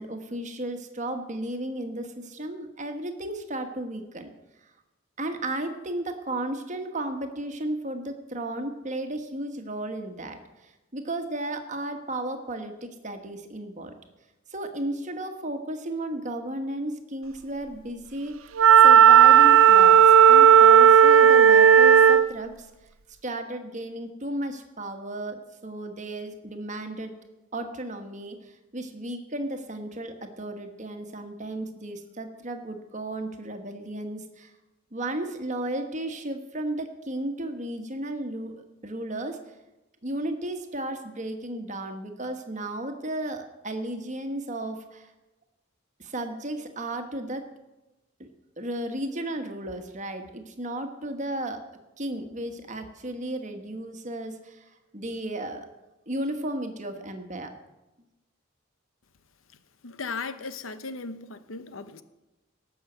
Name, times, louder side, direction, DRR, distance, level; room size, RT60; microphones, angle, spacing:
voice 1, 0.0-4.3 5.2-13.9 14.5-18.3 18.8-22.7 23.2-27.1 27.5-34.5 34.9-38.5 38.8-39.4 40.0-45.1 46.0-47.5 48.6-51.6 52.0-55.7 56.1-57.5, right 1 dB, 35° right, 1.4 m, -34 dB
Wind instrument woodwind instrument, 18.6-22.3, right 8 dB, 85° right, 0.6 m, -13 dB
voice 2, 59.8-62.0, left 4 dB, 80° left, 0.9 m, -36 dB
18.0 x 6.4 x 8.0 m
head